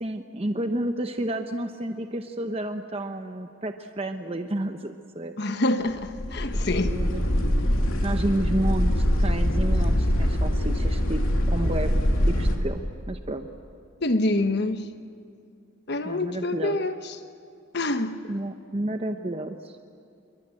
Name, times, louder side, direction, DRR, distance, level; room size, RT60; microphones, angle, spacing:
voice 1, 0.0-5.3 6.8-7.2 8.0-11.2 11.5-11.9 12.3-12.8 13.1-13.5 16.0-16.8 18.3-19.7, right 1 dB, 30° right, 0.8 m, -31 dB
voice 2, 5.4-7.0 14.0-14.9 15.9-17.2 17.7-18.3, left 2 dB, 50° left, 1.2 m, -26 dB
sound 1, 6.0-12.6, equal, 90° left, 2.9 m, -23 dB
26.5 x 23.0 x 8.8 m
head